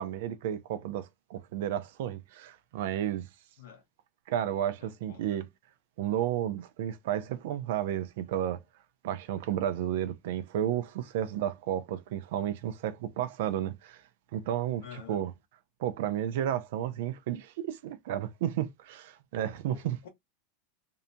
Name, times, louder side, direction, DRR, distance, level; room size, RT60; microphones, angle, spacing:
voice 1, 0.0-3.3 4.3-5.5 6.0-8.6 9.0-14.0 14.3-15.3 15.8-20.0, right 11 dB, 70° right, 0.4 m, -32 dB
voice 2, 4.8-5.5 14.8-15.2 19.7-20.1, left 8 dB, 80° left, 0.9 m, -49 dB
2.7 x 2.1 x 2.5 m
supercardioid pair, 150°, 0 cm